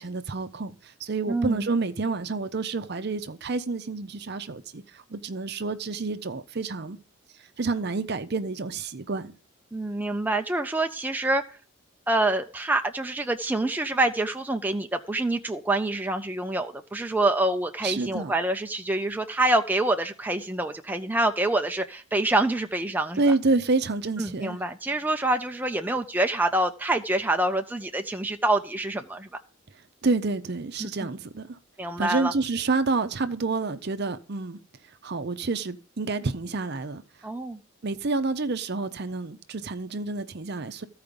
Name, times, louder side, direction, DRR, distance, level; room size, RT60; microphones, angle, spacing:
voice 1, 0.0-7.0 7.6-9.3 17.8-18.3 23.2-24.6 30.0-31.6 32.0-34.6 35.0-37.0 37.8-40.9, right 3 dB, 50° right, 0.6 m, -28 dB
voice 2, 1.3-1.7 9.7-11.4 12.1-23.2 24.2-29.4 30.8-30.9 31.8-32.3 37.2-37.6, right 2 dB, 10° right, 0.4 m, -26 dB
14.5 x 4.8 x 5.2 m
head